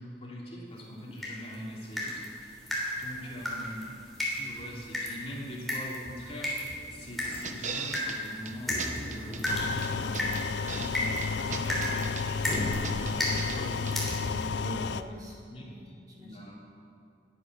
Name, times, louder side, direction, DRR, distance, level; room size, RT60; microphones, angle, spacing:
voice 1, 0.0-2.5 3.0-4.0 4.4-15.0 15.5-15.6 16.2-16.6, equal, 35° left, -4 dB, 2.8 m, -42 dB
sound 1, 1.2-14.5, left 1 dB, ahead, 3.3 m, -35 dB
sound 2, 7.4-8.2 8.4-8.5 8.8-9.5 9.8-10.9 11.2-12.2 12.5-13.6 13.9-14.0, right 5 dB, 40° right, 1.0 m, -38 dB
sound 3, 9.5-15.0, left 5 dB, 70° left, 0.4 m, -32 dB
voice 2, 14.6-16.5, equal, 20° right, -4 dB, 2.4 m, -46 dB
20.0 x 9.1 x 6.2 m, 2.4 s
head